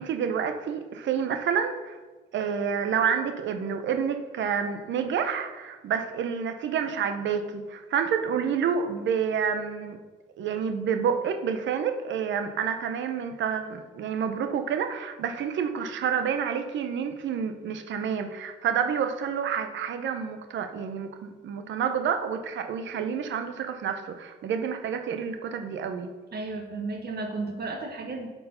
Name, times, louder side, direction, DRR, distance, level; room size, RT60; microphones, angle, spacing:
voice 1, 0.0-2.0 2.3-10.0 10.4-26.1, right 7 dB, 70° right, 7 dB, 0.7 m, -29 dB
voice 2, 26.3-28.3, right 3 dB, 55° right, 3 dB, 1.5 m, -33 dB
8.2 x 4.6 x 5.5 m, 1.3 s
cardioid pair, 90°, 20 cm